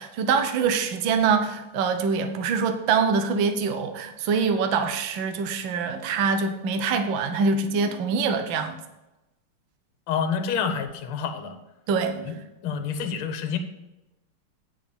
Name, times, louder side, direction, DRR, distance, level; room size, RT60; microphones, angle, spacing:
voice 1, 0.0-8.8 11.9-12.4, right 5 dB, 65° right, 6 dB, 1.6 m, -24 dB
voice 2, 10.1-11.6 12.3-12.4 12.6-13.6, left 6 dB, 80° left, 8 dB, 1.9 m, -28 dB
9.2 x 5.8 x 6.9 m, 0.98 s
omnidirectional pair, 2.4 m